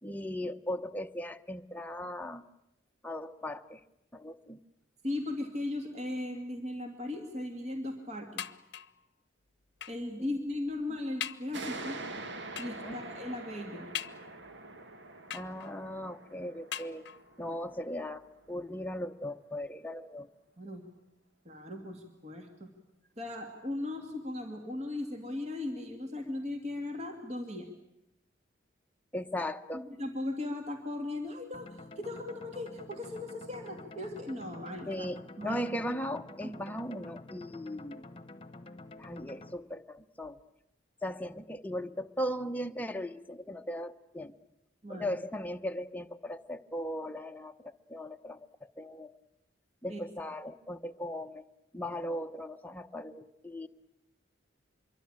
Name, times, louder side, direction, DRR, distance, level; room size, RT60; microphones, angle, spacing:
voice 1, 0.0-2.4 3.0-3.8 4.1-4.6 12.8-13.0 15.3-17.0 17.4-20.3 29.1-29.8 34.9-38.0 39.0-40.4 41.0-44.3 44.9-48.5 48.8-49.2 49.8-51.4 51.7-53.7, left 1 dB, 10° left, 6 dB, 0.9 m, -38 dB
voice 2, 5.0-8.5 9.9-12.0 12.6-13.9 20.6-20.8 21.4-22.7 23.2-27.7 29.7-35.1 35.4-35.6 36.4-36.5 44.8-45.1 49.9-50.0, left 1 dB, 35° right, 4 dB, 2.4 m, -37 dB
sound 1, 8.4-9.0 9.8-10.1 10.7-10.8 11.2-11.6 12.6-12.9 13.9-14.6 15.3-15.9 16.7-17.4 18.2-18.3 18.6-18.7, left 11 dB, 60° left, 0.9 m, -41 dB
sound 2, 11.5-18.7, right 2 dB, 65° right, 1.9 m, -45 dB
sound 3, 31.5-39.5, left 2 dB, 30° left, 1.3 m, -49 dB
25.5 x 23.5 x 8.9 m, 0.86 s
head